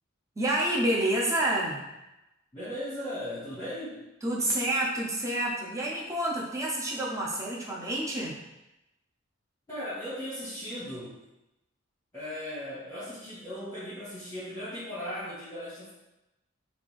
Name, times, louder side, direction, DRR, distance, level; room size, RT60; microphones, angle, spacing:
voice 1, 0.4-1.8 4.2-8.3, right 1 dB, 15° right, -4 dB, 0.6 m, -28 dB
voice 2, 2.5-4.0 9.7-11.2 12.1-15.9, equal, 20° left, -11 dB, 1.1 m, -37 dB
3.3 x 2.5 x 3.6 m, 0.95 s
head